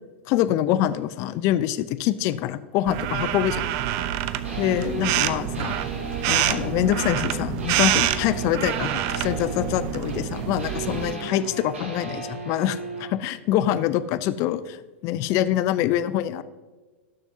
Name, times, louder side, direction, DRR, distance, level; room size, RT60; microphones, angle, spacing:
voice 1, 0.3-3.7 4.6-5.8 6.3-16.4, left 12 dB, 45° left, 14 dB, 0.7 m, -25 dB
sound 1, 2.9-11.1, right 13 dB, 50° right, 0.6 m, -27 dB
sound 2, 4.4-13.1, right 2 dB, 85° right, 2.6 m, -35 dB
18.5 x 7.0 x 2.8 m, 1.3 s
hypercardioid pair, 100°, 7 cm